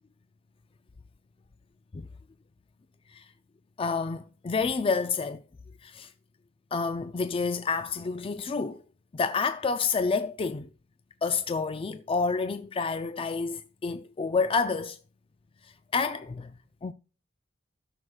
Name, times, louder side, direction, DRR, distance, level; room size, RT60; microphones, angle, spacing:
voice 1, 3.8-5.4 5.8-6.1 6.7-8.8 9.1-10.7 11.2-15.0 15.6-16.5 16.8-16.9, left 4 dB, 25° left, 0.4 m, -29 dB
14.5 x 6.3 x 2.4 m
head